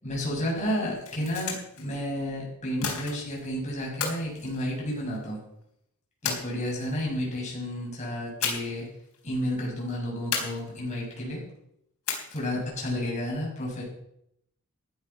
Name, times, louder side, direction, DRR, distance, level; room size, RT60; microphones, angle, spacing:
voice 1, 0.0-5.4 6.2-8.8 9.2-11.4 12.3-13.8, equal, 30° left, -3 dB, 6.8 m, -31 dB
sound 1, 1.0-1.8 2.8-3.5 4.0-5.3 6.2-7.0 8.4-8.9 9.1-9.3 10.3-11.0 12.1-12.6, left 5 dB, 85° left, 4.0 m, -33 dB
15.0 x 10.5 x 6.0 m, 0.76 s
head